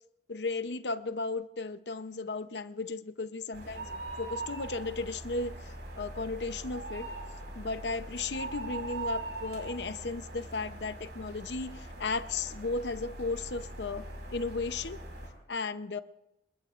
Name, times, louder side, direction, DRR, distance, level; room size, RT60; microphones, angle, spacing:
voice 1, 0.3-5.6 6.0-7.1 7.6-14.0 14.3-15.0 15.5-16.0, left 3 dB, 75° left, 0.7 m, -35 dB
sound 1, 3.5-15.3, right 2 dB, 80° right, 5.2 m, -41 dB
28.0 x 20.5 x 2.5 m
head